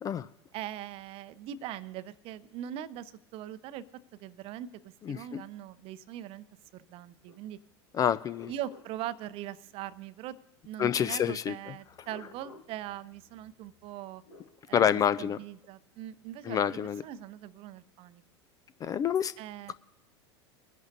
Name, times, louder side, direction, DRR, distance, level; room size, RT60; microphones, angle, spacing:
voice 1, 0.5-3.8 4.1-6.4 6.7-7.6 8.5-10.4 10.6-14.2 14.7-14.9 15.2-18.2 19.4-19.7, right 12 dB, 40° right, 15 dB, 0.6 m, -41 dB
voice 2, 5.0-5.4 7.9-8.5 10.8-11.5 12.0-12.1 14.7-15.4 16.4-17.0 18.8-19.3 19.7-19.8, left 9 dB, 25° left, 16 dB, 0.3 m, -28 dB
sound 1, 7.2-7.5 7.9-9.9 11.8-14.5 16.2-17.0, left 2 dB, 80° left, 1.7 m, -57 dB
23.0 x 10.5 x 2.7 m, 0.84 s
figure-of-eight pair, 80°, 14 cm